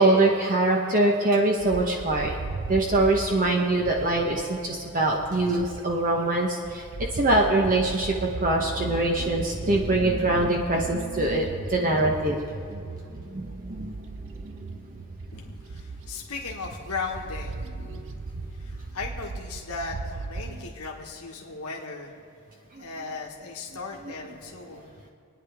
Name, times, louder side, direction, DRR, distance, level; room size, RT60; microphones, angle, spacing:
voice 1, 0.0-2.3 2.7-6.9 7.1-12.8 13.1-15.0 17.9-18.1 22.7-22.8 24.7-24.8, right 2 dB, 40° right, 0 dB, 1.0 m, -24 dB
Bird, 1.6-6.1 6.5-20.7, right 3 dB, 60° right, 0.6 m, -37 dB
voice 2, 15.3-18.2 18.5-22.2 22.8-25.0, left 4 dB, 75° left, -1 dB, 1.6 m, -37 dB
26.0 x 9.7 x 3.6 m, 2.4 s
head